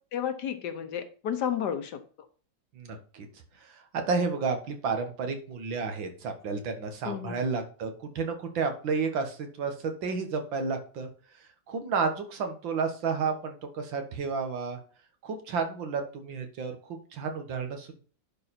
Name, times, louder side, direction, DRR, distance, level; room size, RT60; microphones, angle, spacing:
voice 1, 0.1-2.0 7.0-7.4, left 9 dB, 65° left, 9 dB, 1.4 m, -32 dB
voice 2, 2.8-3.3 3.6-11.1 11.7-14.8 15.2-18.0, right 5 dB, 85° right, 6 dB, 2.2 m, -31 dB
10.5 x 4.8 x 4.2 m, 0.40 s
omnidirectional pair, 2.0 m